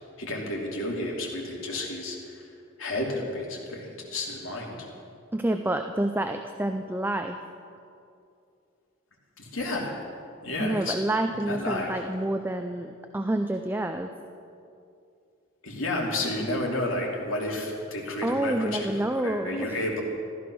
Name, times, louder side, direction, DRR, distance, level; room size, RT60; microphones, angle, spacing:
voice 1, 0.2-2.4 2.8-4.9 9.4-9.9 10.4-10.9 11.4-12.0 15.6-18.9 19.2-20.0, left 1 dB, 80° left, -1 dB, 2.9 m, -31 dB
voice 2, 5.3-7.4 10.6-14.1 18.2-19.8, right 1 dB, 10° right, 6 dB, 0.5 m, -28 dB
14.5 x 13.5 x 6.2 m, 2.5 s
head